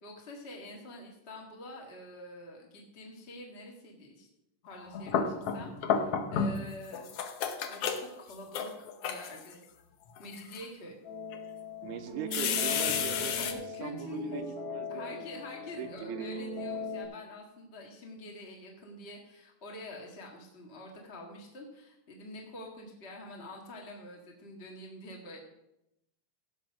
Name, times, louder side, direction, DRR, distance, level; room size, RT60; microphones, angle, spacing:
voice 1, 0.0-4.3 4.6-7.0 7.7-9.6 10.2-11.0 13.3-14.4 14.9-25.4, left 1 dB, 30° left, 0 dB, 1.3 m, -46 dB
sound 1, 4.7-6.7 6.9-9.5 10.2-10.6 11.3-11.4 12.3-13.5, left 6 dB, 75° left, 1.4 m, -31 dB
sound 2, 11.0-17.1, left 3 dB, 55° left, 5.1 m, -39 dB
voice 2, 11.8-13.5 13.8-15.3 15.6-16.3, right 10 dB, 80° right, 10 dB, 2.0 m, -41 dB
16.0 x 5.5 x 6.1 m, 0.86 s
omnidirectional pair, 3.9 m